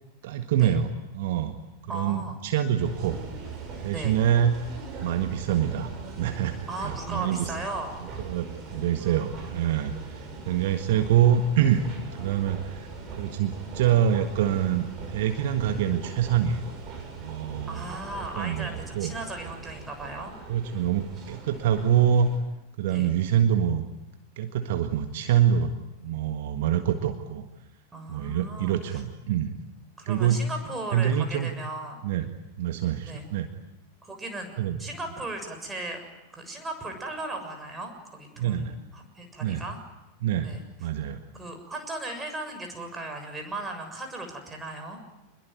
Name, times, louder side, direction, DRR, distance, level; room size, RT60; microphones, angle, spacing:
voice 1, 0.2-1.5 1.9-3.2 3.8-4.5 5.0-7.5 8.2-11.9 12.2-12.9 13.2-16.6 17.2-17.9 18.4-19.1 20.5-22.3 22.8-23.8 24.4-27.4 28.1-29.6 30.0-30.4 30.9-31.5 32.0-32.3 32.6-33.5 34.6-34.8 38.4-38.7 39.4-39.6 40.2-40.5 40.8-41.2, right 9 dB, 55° right, 7 dB, 1.6 m, -25 dB
voice 2, 1.9-2.4 3.9-4.2 6.7-8.0 9.0-9.5 10.8-11.1 17.7-20.3 22.9-23.1 27.9-29.0 30.0-32.0 33.1-33.3 34.0-34.5 34.8-36.0 36.3-39.8 40.4-40.6 41.3-45.0, right 2 dB, 15° right, 4 dB, 7.0 m, -37 dB
sound 1, 2.8-22.4, right 4 dB, 30° right, 7.7 m, -40 dB
26.5 x 22.0 x 9.5 m, 1.0 s
figure-of-eight pair, 90°, 0 cm